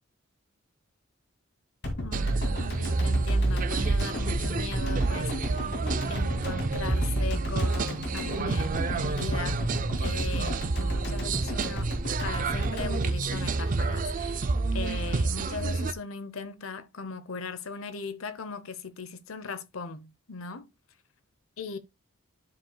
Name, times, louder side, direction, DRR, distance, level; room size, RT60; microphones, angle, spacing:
sound 1, 1.8-14.2 14.5-14.6, left 1 dB, 55° left, 2.4 m, -35 dB
voice 1, 2.0-2.5 2.8-5.7 6.1-9.6 10.0-11.9 12.2-20.7 21.6-21.8, left 5 dB, 85° left, 0.8 m, -39 dB
sound 2, 2.1-15.9, right 3 dB, 40° right, 0.5 m, -28 dB
12.0 x 5.1 x 2.3 m
head